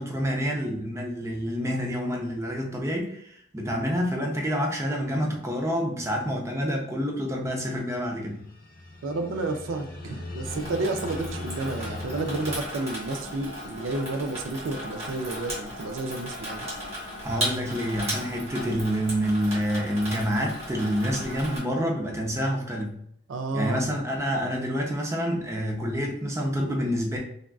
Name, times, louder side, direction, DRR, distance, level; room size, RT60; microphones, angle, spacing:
voice 1, 0.0-8.4 17.2-23.0 23.5-27.2, equal, 15° right, 0 dB, 0.5 m, -28 dB
sound 1, 8.1-12.6, left 2 dB, 45° left, 0.6 m, -39 dB
voice 2, 9.0-16.7 23.3-23.8, right 2 dB, 80° right, 6 dB, 0.4 m, -31 dB
Water tap faucet / Sink (filling or washing), 10.4-21.6, equal, 30° right, 1.0 m, -36 dB
3.4 x 2.3 x 2.3 m, 0.69 s
head